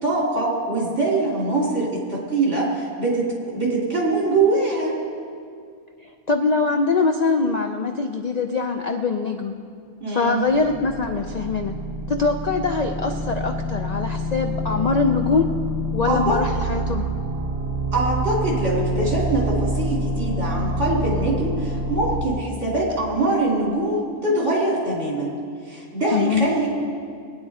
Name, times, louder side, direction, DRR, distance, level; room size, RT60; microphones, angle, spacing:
voice 1, 0.0-5.0 10.0-10.4 16.0-16.4 17.9-25.3 25.7-26.7, right 2 dB, 55° right, -4 dB, 3.4 m, -23 dB
voice 2, 6.0-9.5 10.1-11.7 12.1-15.5 15.9-17.1 26.1-26.5, left 4 dB, 55° left, 4 dB, 0.4 m, -23 dB
sound 1, 10.4-22.3, equal, 15° right, 0.9 m, -27 dB
21.5 x 9.6 x 4.2 m, 2.3 s
omnidirectional pair, 1.5 m